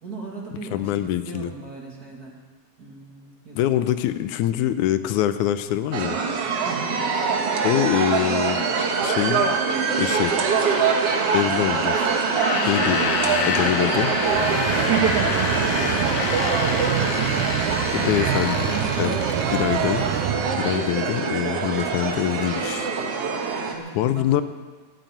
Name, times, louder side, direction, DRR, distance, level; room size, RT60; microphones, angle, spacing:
voice 1, 0.0-2.4 2.8-3.9 6.6-7.1 11.2-11.7 12.5-14.3 16.4-19.1 23.7-24.4, right 3 dB, 30° right, -2 dB, 2.6 m, -38 dB
voice 2, 0.7-1.5 3.6-6.2 7.6-8.7 9.0-9.5 10.0-10.3 11.3-12.1 12.7-13.0 13.5-14.1 17.9-18.6 19.0-19.1 19.5-20.3 20.6-22.9 24.0-24.4, left 12 dB, 85° left, 11 dB, 2.1 m, -24 dB
sound 1, 5.9-23.7, right 5 dB, 60° right, 2.1 m, -24 dB
sound 2, 12.3-19.5, left 6 dB, 65° left, 2.1 m, -28 dB
sound 3, 14.3-21.0, right 12 dB, 85° right, 2.1 m, -28 dB
13.5 x 9.1 x 9.1 m, 1.4 s
omnidirectional pair, 3.5 m